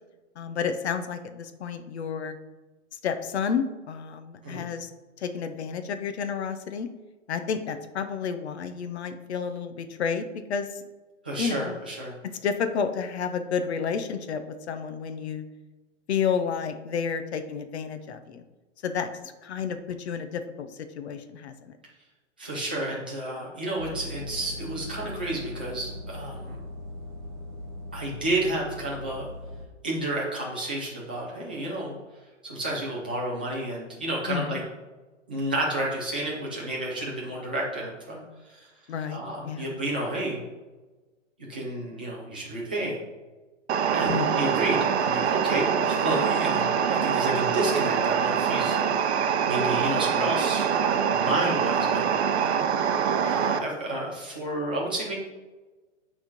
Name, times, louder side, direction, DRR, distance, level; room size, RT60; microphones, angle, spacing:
voice 1, 0.4-2.3 2.9-4.9 5.2-6.9 7.3-10.8 11.4-11.7 12.4-15.4 16.1-18.4 18.8-21.7 34.3-34.6 38.9-39.6 44.1-44.5, left 6 dB, 60° left, 8 dB, 0.8 m, -31 dB
voice 2, 11.2-12.1 22.4-26.6 27.9-29.3 29.8-32.0 32.4-34.6 35.3-38.7 39.1-40.4 41.5-43.0 43.9-49.1 49.4-52.6 53.2-55.1, right 1 dB, 10° right, -5 dB, 0.3 m, -31 dB
sound 1, 23.8-29.6, left 1 dB, 40° right, 2.2 m, -39 dB
sound 2, 43.7-53.6, right 7 dB, 55° right, 0.7 m, -24 dB
8.0 x 3.6 x 5.2 m, 1.2 s
hypercardioid pair, 150°, 38 cm